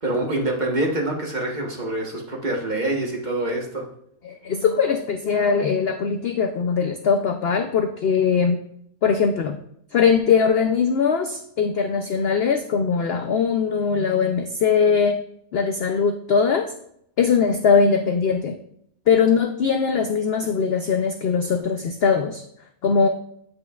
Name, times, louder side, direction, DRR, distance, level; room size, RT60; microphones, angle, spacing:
voice 1, 0.0-3.8, right 1 dB, 30° right, -1 dB, 1.2 m, -25 dB
voice 2, 4.2-8.6 9.0-9.6 9.9-15.2 15.5-16.7 17.2-18.6 19.1-22.4 22.8-23.1, left 6 dB, 70° left, 6 dB, 0.5 m, -21 dB
8.4 x 8.0 x 2.3 m, 0.73 s
omnidirectional pair, 1.6 m